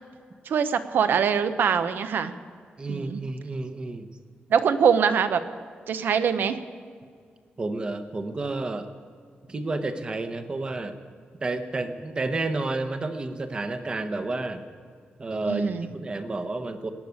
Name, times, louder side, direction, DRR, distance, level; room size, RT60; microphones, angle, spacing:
voice 1, 0.5-2.3 2.9-3.2 4.5-5.4 5.9-6.6 15.4-15.9, right 7 dB, 70° right, 11 dB, 0.8 m, -23 dB
voice 2, 2.8-4.1 7.6-8.9 9.5-11.0 11.4-14.6 15.2-16.9, right 2 dB, 25° right, 8 dB, 0.9 m, -30 dB
19.0 x 6.6 x 9.6 m, 2.1 s
wide cardioid pair, 165°, 4 cm